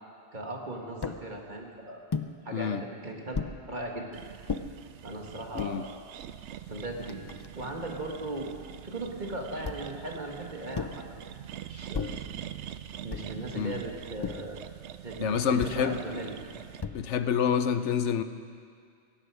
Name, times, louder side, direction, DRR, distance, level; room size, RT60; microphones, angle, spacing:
voice 1, 0.3-2.0 2.4-4.3 5.0-5.9 6.7-7.2 7.6-8.5 8.8-11.0 11.7-12.1 13.0-14.6 15.0-16.4, right 2 dB, 40° right, 0 dB, 2.0 m, -37 dB
sound 1, 1.0-1.2 2.1-2.3 3.3-3.6 4.5-4.7 5.4-5.7 6.5-6.6 6.8-7.8 9.6-10.0 10.7-11.1 11.9-12.3 13.1-13.4 14.2-14.6 15.6-15.8 16.8-17.2, left 5 dB, 40° left, 0.3 m, -35 dB
voice 2, 2.5-2.8 5.5-5.8 13.5-13.8 15.2-16.0 16.9-18.2, left 7 dB, 85° left, 10 dB, 1.1 m, -27 dB
sound 2, 4.1-16.8, right 10 dB, 80° right, 0.9 m, -44 dB
17.5 x 16.0 x 4.9 m, 2.2 s
omnidirectional pair, 1.2 m